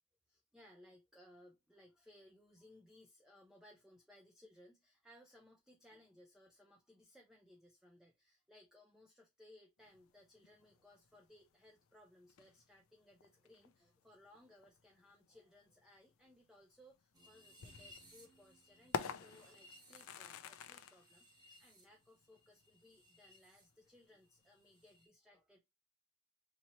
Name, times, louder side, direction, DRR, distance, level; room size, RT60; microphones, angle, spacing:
voice 1, 0.3-25.6, left 1 dB, ahead, 0.5 m, -64 dB
sound 1, 9.8-25.0, left 6 dB, 75° left, 0.4 m, -51 dB
sound 2, 17.1-23.6 23.9-25.1, equal, 20° right, 1.2 m, -64 dB
4.3 x 2.9 x 2.9 m
head